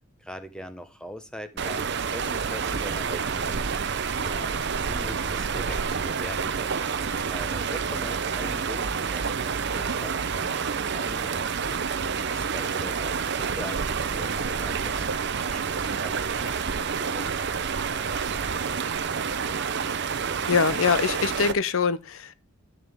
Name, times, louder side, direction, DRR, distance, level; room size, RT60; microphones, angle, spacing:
voice 1, 0.2-3.7 4.2-6.9 7.1-11.9 12.3-19.6, equal, 5° left, 0.8 m, -43 dB
sound 1, 1.6-21.5, right 6 dB, 50° right, 0.6 m, -28 dB
voice 2, 20.5-22.3, left 5 dB, 60° left, 0.6 m, -23 dB
11.0 x 7.0 x 3.5 m
head